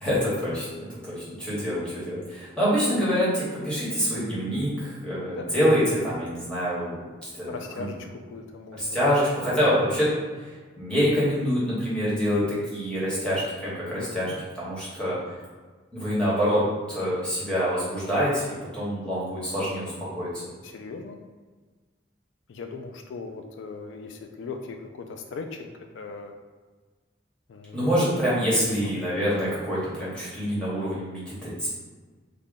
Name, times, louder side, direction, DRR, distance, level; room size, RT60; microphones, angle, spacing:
voice 1, 0.0-6.9 7.2-7.9 8.7-10.1 10.4-10.5 10.8-15.2 15.9-20.3 27.7-31.7, equal, 5° left, -9 dB, 1.1 m, -26 dB
voice 2, 7.5-9.1 9.8-10.1 13.9-14.4 20.6-21.2 22.5-25.7 25.9-26.3 27.5-27.9 28.5-29.0, left 4 dB, 80° left, 5 dB, 0.3 m, -39 dB
3.4 x 2.2 x 3.8 m, 1.4 s
head